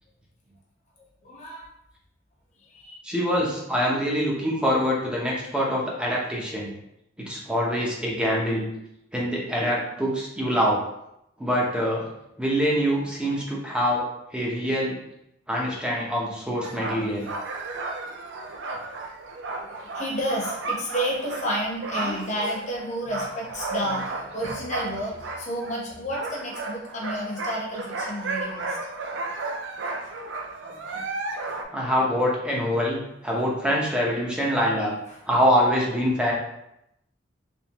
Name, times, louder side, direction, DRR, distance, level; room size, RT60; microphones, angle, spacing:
voice 1, 1.0-1.7 2.6-3.0 19.6-28.8 35.1-35.2, equal, 40° left, -3 dB, 1.1 m, -31 dB
voice 2, 3.0-6.7 7.2-8.7 9.1-10.8 11.4-12.0 12.4-15.0 15.5-17.3 31.7-34.9 35.3-36.3, equal, 5° right, -3 dB, 0.8 m, -24 dB
Speech, 16.6-16.7 21.9-22.6 23.8-24.1, left 1 dB, 65° left, 1.3 m, -40 dB
sound 1, 16.6-25.8 26.1-31.6, right 3 dB, 70° right, 0.5 m, -33 dB
3.5 x 3.3 x 3.0 m, 0.82 s
head